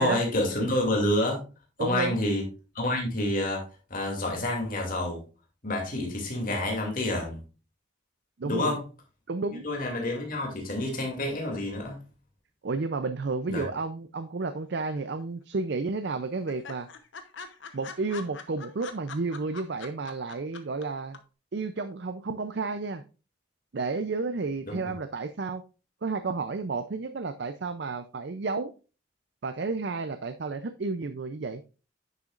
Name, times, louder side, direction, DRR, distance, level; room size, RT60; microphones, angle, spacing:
voice 1, 0.0-1.4 1.8-2.4 2.7-3.6 3.9-5.2 5.6-7.4 8.4-8.8 9.5-12.0 13.5-13.6 24.7-24.8, left 1 dB, 45° left, 0 dB, 2.6 m, -28 dB
voice 2, 1.8-2.2 8.4-8.8 9.3-9.7 12.6-16.9 17.7-21.2 21.5-23.0 23.7-25.6 26.0-28.7 29.4-31.6, right 3 dB, 60° right, 10 dB, 0.5 m, -31 dB
sound 1, 14.8-15.4 15.7-15.8 16.1-16.2 16.5-20.8 21.1-21.2, left 5 dB, 70° left, 0.9 m, -43 dB
9.9 x 6.8 x 2.5 m, 0.33 s
head